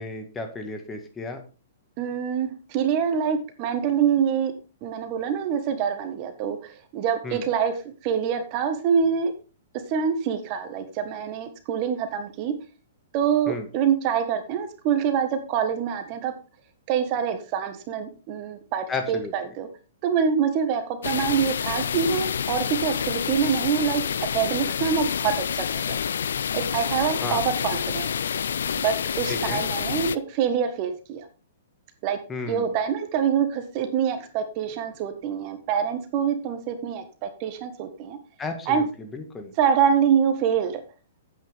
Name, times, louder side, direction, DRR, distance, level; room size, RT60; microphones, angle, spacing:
voice 1, 0.0-1.4 7.2-7.4 13.5-13.7 18.9-19.3 27.2-27.4 29.3-29.6 32.3-32.7 38.4-39.5, left 3 dB, 15° left, 5 dB, 1.8 m, -33 dB
voice 2, 2.0-4.5 4.8-7.7 8.0-9.3 9.9-12.5 13.1-16.3 16.9-19.7 20.0-24.0 24.3-26.0 26.5-28.1 28.7-31.3 32.0-32.2 32.5-38.2 38.7-38.8 39.6-40.8, right 7 dB, 40° right, 8 dB, 1.4 m, -25 dB
sound 1, 21.0-30.2, left 7 dB, 70° left, 0.4 m, -28 dB
9.2 x 8.5 x 3.5 m, 0.34 s
figure-of-eight pair, 115°, 0 cm